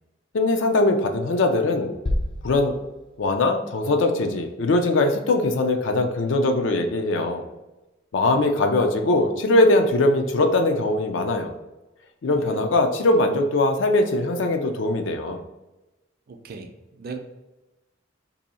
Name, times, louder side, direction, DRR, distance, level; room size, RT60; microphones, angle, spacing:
voice 1, 0.3-1.9 2.4-2.7 3.2-7.4 8.1-11.5 12.2-15.4, left 2 dB, 90° left, 5 dB, 0.5 m, -21 dB
sound 1, 2.1-3.9, left 1 dB, 30° left, 0.3 m, -30 dB
voice 2, 16.3-16.7 17.0-17.2, right 4 dB, 55° right, 6 dB, 0.4 m, -37 dB
2.7 x 2.6 x 4.1 m, 1.0 s
head